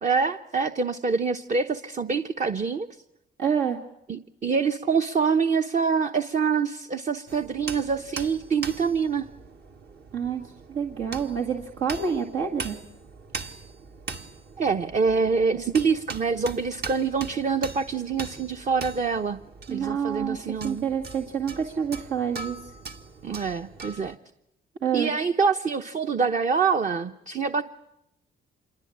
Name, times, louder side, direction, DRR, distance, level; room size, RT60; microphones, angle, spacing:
voice 1, 0.0-2.9 4.1-9.3 14.6-19.4 19.7-20.9 23.2-24.2 24.9-27.6, right 5 dB, 40° right, 7 dB, 0.9 m, -25 dB
voice 2, 3.4-3.8 10.1-12.8 19.7-20.4 20.6-22.7 24.8-25.1, right 7 dB, 75° right, 0 dB, 2.2 m, -28 dB
sound 1, 7.3-24.1, right 4 dB, 55° right, 1.8 m, -41 dB
27.0 x 22.5 x 8.7 m, 0.83 s
cardioid pair, 90°, 20 cm